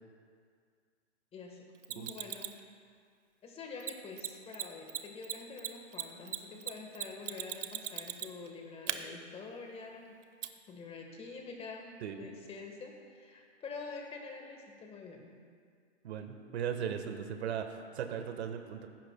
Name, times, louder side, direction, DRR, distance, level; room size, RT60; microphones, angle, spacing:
voice 1, 1.3-1.7 1.9-2.6 3.4-10.1 10.7-15.3, left 4 dB, 15° left, 2 dB, 1.3 m, -46 dB
Mechanisms, 1.8-2.6 3.8-3.9 4.2-4.3 4.5-4.6 4.9-8.5 8.9-9.0 10.4-10.5, right 10 dB, 80° right, 0.9 m, -37 dB
voice 2, 16.0-18.9, right 8 dB, 60° right, 7 dB, 1.3 m, -38 dB
18.0 x 15.0 x 2.2 m, 2.1 s
hypercardioid pair, 135°, 36 cm